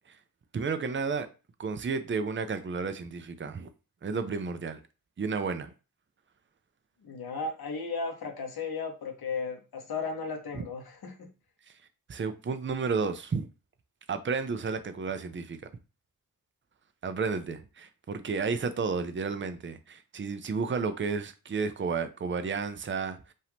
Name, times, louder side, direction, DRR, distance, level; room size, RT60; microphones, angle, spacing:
voice 1, 0.5-1.3 1.6-3.7 4.0-4.8 5.2-5.7 10.5-10.6 12.1-13.5 14.1-15.6 17.0-23.3, right 5 dB, 35° right, 0.6 m, -32 dB
voice 2, 7.0-11.3, left 4 dB, 90° left, 1.2 m, -35 dB
5.3 x 2.6 x 3.5 m
wide cardioid pair, 125°, 36 cm